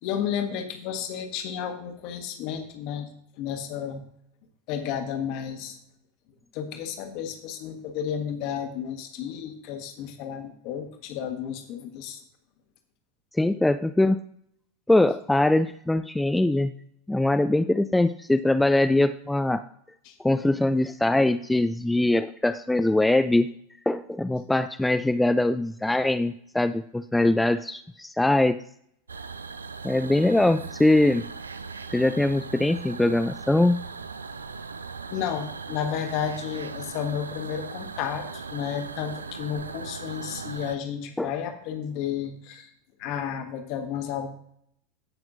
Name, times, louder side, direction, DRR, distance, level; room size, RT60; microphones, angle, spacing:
voice 1, 0.0-3.1 3.3-4.0 4.7-5.8 6.5-12.2 20.0-20.2 35.1-42.7 43.0-44.3, left 8 dB, 45° left, 6 dB, 1.4 m, -32 dB
voice 2, 13.4-14.2 14.9-16.7 17.1-19.6 20.2-23.5 23.9-28.6 29.8-31.2 31.9-33.8 41.2-41.3, left 2 dB, 5° left, 11 dB, 0.3 m, -22 dB
sound 1, 29.1-40.8, right 5 dB, 75° right, 0.4 m, -38 dB
17.0 x 5.9 x 2.6 m, 0.70 s
figure-of-eight pair, 85°, 0 cm